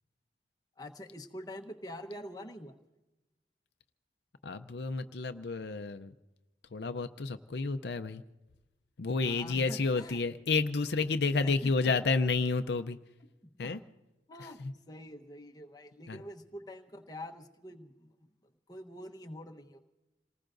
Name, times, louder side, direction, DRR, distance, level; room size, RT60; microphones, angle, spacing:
voice 1, 0.8-2.7 9.2-10.2 11.4-11.9 13.6-13.7 14.3-14.6 14.9-18.1 18.7-19.8, left 1 dB, 20° left, 3 dB, 1.0 m, -45 dB
voice 2, 4.4-6.1 6.7-8.2 9.0-13.0 13.6-13.8 14.4-14.7 16.1-16.2, left 4 dB, 70° left, 9 dB, 0.6 m, -31 dB
28.0 x 19.5 x 2.6 m, 1.0 s
head